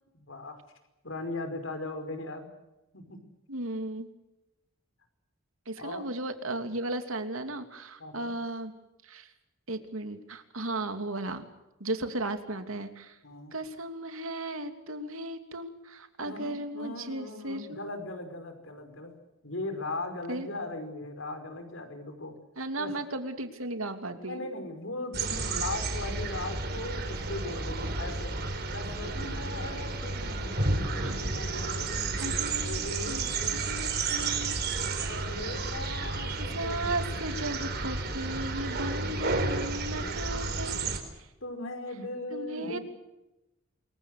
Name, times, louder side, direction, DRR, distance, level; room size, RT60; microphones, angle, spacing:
voice 1, 0.1-0.6 1.0-2.5 2.9-3.2 5.8-6.1 8.0-8.3 13.2-13.5 16.2-19.1 19.4-22.4 22.8-22.9 24.1-28.4 28.7-33.6 35.0-37.6 38.5-41.0 41.4-42.8, left 2 dB, 70° left, 7 dB, 5.3 m, -39 dB
voice 2, 3.5-4.1 5.7-8.7 9.0-9.3 9.7-11.5 11.8-13.2 13.5-17.8 20.3-20.5 22.6-24.4 31.0-31.2 32.2-33.2 33.5-34.6 35.0-35.1 36.4-40.8 41.2-41.3 42.3-42.8, right 2 dB, 90° right, 7 dB, 2.9 m, -35 dB
sound 1, 25.1-41.0, right 3 dB, 50° right, 4.3 m, -32 dB
27.5 x 23.0 x 6.7 m, 0.98 s
head